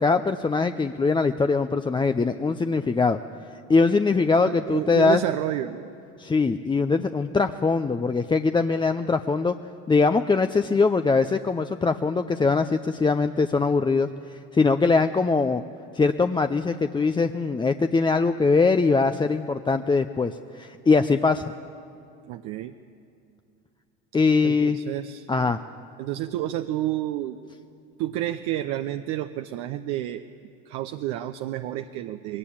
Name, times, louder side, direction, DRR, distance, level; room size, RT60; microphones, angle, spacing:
voice 1, 0.0-3.2 3.7-5.2 6.2-9.5 9.9-15.6 15.9-21.4 24.1-24.8 25.3-25.6, left 4 dB, 15° left, 8 dB, 0.6 m, -22 dB
voice 2, 4.4-5.9 22.3-22.7 24.4-25.3 26.0-27.4 28.0-30.2 30.7-32.4, right 13 dB, 65° right, 8 dB, 0.8 m, -30 dB
21.0 x 18.0 x 8.7 m, 2.5 s
hypercardioid pair, 80°, 35 cm